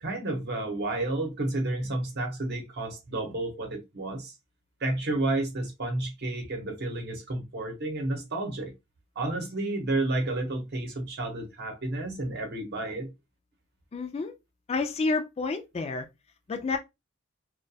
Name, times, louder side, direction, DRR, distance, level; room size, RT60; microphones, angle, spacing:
voice 1, 0.0-4.3 4.8-8.7 9.2-13.1, right 2 dB, 55° right, 0.8 m, -31 dB
voice 2, 13.9-14.3 14.7-16.1 16.5-16.8, left 3 dB, 30° left, 0.3 m, -29 dB
2.3 x 2.1 x 2.6 m
head